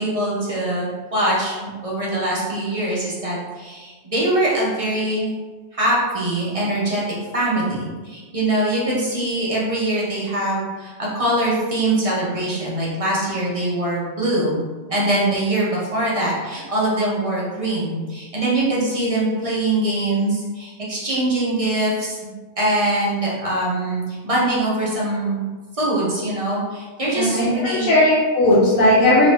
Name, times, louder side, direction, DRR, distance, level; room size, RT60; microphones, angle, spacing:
voice 1, 0.0-1.6 1.8-5.3 5.7-7.0 7.3-14.6 14.9-22.2 22.6-25.4 25.8-27.9, right 1 dB, 30° right, -6 dB, 0.7 m, -23 dB
voice 2, 27.2-29.3, left 1 dB, 85° left, -8 dB, 1.1 m, -16 dB
3.0 x 2.6 x 3.3 m, 1.3 s
omnidirectional pair, 1.4 m